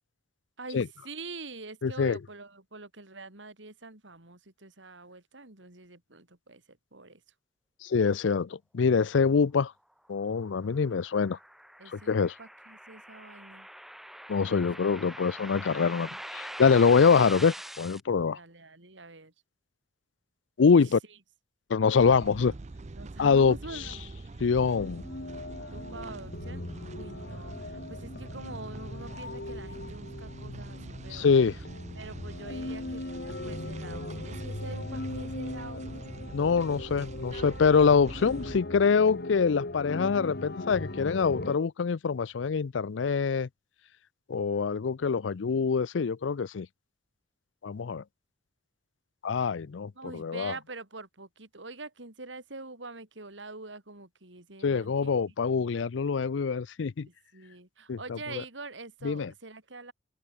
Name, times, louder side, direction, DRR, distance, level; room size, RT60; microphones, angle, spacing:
voice 1, 0.6-6.6 6.9-7.2 11.8-13.7 14.5-14.7 15.5-15.7 18.3-19.3 20.7-20.8 22.9-24.0 25.7-26.7 26.9-31.5 31.9-36.1 50.0-55.1 57.0-59.9, right 3 dB, 90° right, 4.0 m, -45 dB
voice 2, 1.8-2.2 7.8-9.7 10.1-11.4 11.9-12.3 14.3-18.4 20.6-21.0 21.7-22.5 23.2-23.6 24.4-25.0 31.1-31.6 36.3-43.5 44.3-46.7 47.6-48.0 49.2-50.5 54.6-57.1 57.9-58.2 59.0-59.3, left 5 dB, 90° left, 0.5 m, -25 dB
sound 1, 10.2-18.0, equal, ahead, 0.9 m, -43 dB
sound 2, 22.0-38.6, right 2 dB, 40° right, 0.6 m, -44 dB
sound 3, 24.6-41.6, left 2 dB, 60° left, 1.9 m, -39 dB
open air
head